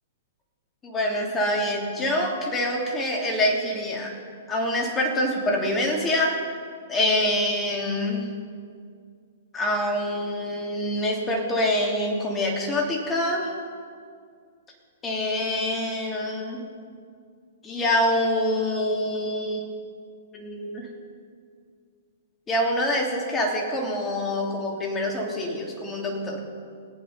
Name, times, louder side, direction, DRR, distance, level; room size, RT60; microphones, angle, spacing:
voice 1, 0.8-4.1 4.5-6.4 6.9-8.3 9.5-13.5 15.0-16.6 17.6-19.8 20.3-20.9 22.5-26.4, left 1 dB, 20° left, 0 dB, 2.8 m, -25 dB
19.5 x 8.8 x 5.6 m, 2.2 s
hypercardioid pair, 120°, 0 cm